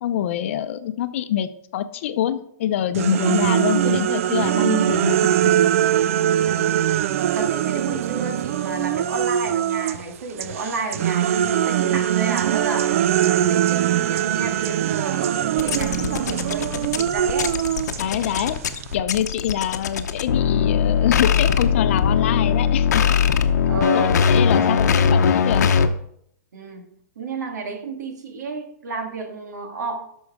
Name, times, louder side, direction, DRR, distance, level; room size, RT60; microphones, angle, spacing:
voice 1, 0.0-5.5 18.0-18.6 18.9-23.0 23.9-25.7, left 10 dB, 50° left, 11 dB, 0.6 m, -25 dB
sound 1, 2.9-10.0 10.4-18.9, right 11 dB, 55° right, 0.3 m, -22 dB
voice 2, 6.4-6.7 7.3-12.9 13.2-17.6 23.7-24.2 24.5-25.2 26.5-26.9 27.2-30.1, right 3 dB, 90° right, 4 dB, 1.9 m, -31 dB
sound 2, 15.6-25.9, left 7 dB, 80° left, 0.8 m, -20 dB
11.0 x 6.3 x 3.6 m, 0.70 s
hypercardioid pair, 165°, 9 cm